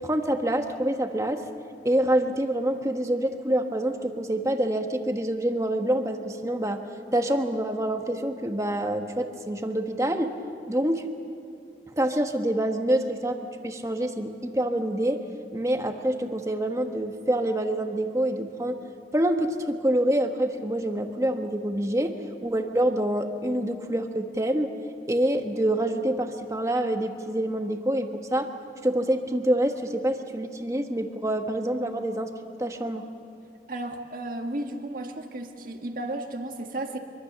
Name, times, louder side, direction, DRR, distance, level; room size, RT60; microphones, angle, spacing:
voice 1, 0.0-1.5 1.8-6.8 7.1-10.3 10.7-11.1 12.0-15.2 15.5-18.8 19.1-24.7 25.1-28.5 28.8-32.3 32.6-33.0, right 1 dB, 15° right, 5 dB, 1.3 m, -26 dB
voice 2, 33.7-37.0, right 1 dB, 50° right, 3 dB, 1.8 m, -34 dB
24.5 x 24.0 x 6.8 m, 2.5 s
head